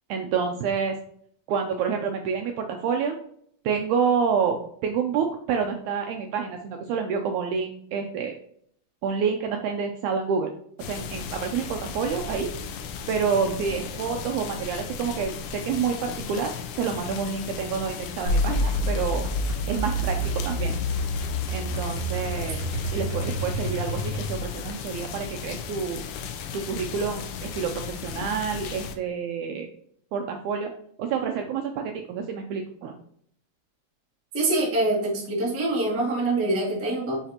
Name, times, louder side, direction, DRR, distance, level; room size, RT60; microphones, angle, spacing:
voice 1, 0.1-1.0 1.5-3.2 3.6-8.4 9.0-10.5 10.9-12.5 13.1-19.2 19.7-20.8 21.5-22.6 22.9-26.0 26.5-29.7 30.1-30.7 31.0-33.0, right 6 dB, 90° right, 4 dB, 1.7 m, -28 dB
sound 1, 10.8-29.0, left 7 dB, 80° left, 2.1 m, -36 dB
sound 2, 18.3-24.6, equal, 40° right, 2.5 m, -28 dB
voice 2, 34.3-37.2, right 2 dB, 20° right, -5 dB, 0.4 m, -25 dB
5.9 x 5.7 x 2.8 m, 0.64 s
omnidirectional pair, 4.0 m